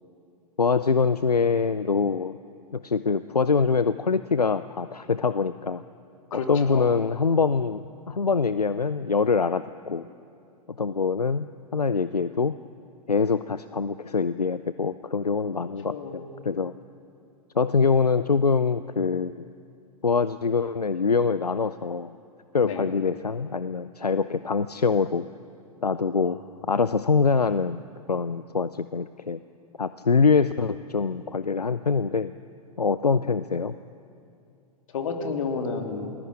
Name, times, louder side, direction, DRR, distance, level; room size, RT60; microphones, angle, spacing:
voice 1, 0.6-2.4 2.7-5.8 6.5-10.1 10.7-11.5 11.7-12.6 13.1-16.7 17.5-19.5 20.0-22.2 22.5-25.3 25.8-26.4 26.7-27.8 28.1-29.4 29.8-32.3 32.8-33.7, left 5 dB, 80° left, 14 dB, 0.6 m, -24 dB
voice 2, 6.3-6.9 15.9-16.3 22.6-22.9 26.2-26.3 34.9-36.1, left 4 dB, 55° left, 3 dB, 3.5 m, -31 dB
29.0 x 20.0 x 8.9 m, 2.5 s
figure-of-eight pair, 105°, 20 cm